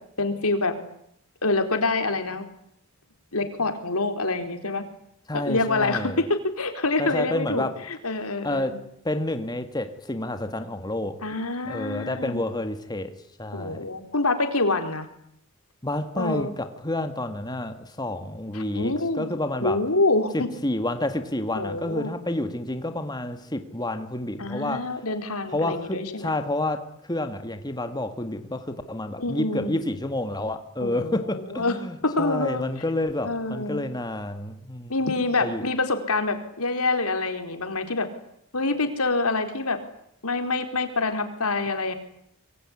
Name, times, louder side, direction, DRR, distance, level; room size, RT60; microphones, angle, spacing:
voice 1, 0.2-0.7 1.4-2.4 3.3-4.8 5.3-8.8 11.2-12.4 13.5-15.1 16.2-16.5 18.5-19.3 19.6-20.5 21.5-22.1 24.4-26.3 29.2-29.9 30.8-32.6 33.2-33.8 34.9-38.1 38.5-39.8 40.2-41.9, left 3 dB, 90° left, 4.3 m, -26 dB
voice 2, 5.3-6.2 7.0-7.8 8.4-11.2 11.7-13.1 13.4-13.9 15.8-19.8 20.3-24.9 25.5-34.9 35.4-35.6, left 1 dB, 20° left, 1.9 m, -29 dB
25.5 x 23.5 x 9.8 m
head